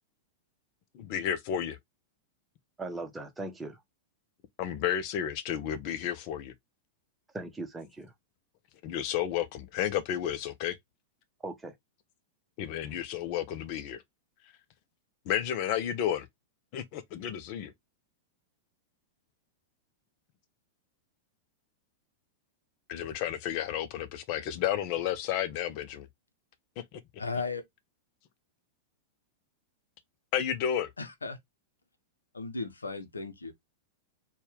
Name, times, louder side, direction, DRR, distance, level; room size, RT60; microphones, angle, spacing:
voice 1, 0.9-1.8 4.6-6.5 8.8-10.8 12.6-14.0 15.3-16.3 16.7-17.7 22.9-26.1 30.3-30.9, left 10 dB, 50° left, 0.6 m, -32 dB
voice 2, 2.8-3.8 7.3-8.1 11.4-11.7, right 2 dB, 10° right, 0.9 m, -39 dB
voice 3, 27.2-27.6 31.0-31.4 32.3-33.5, left 4 dB, 85° left, 0.7 m, -35 dB
4.3 x 2.3 x 3.3 m
figure-of-eight pair, 100°, 0 cm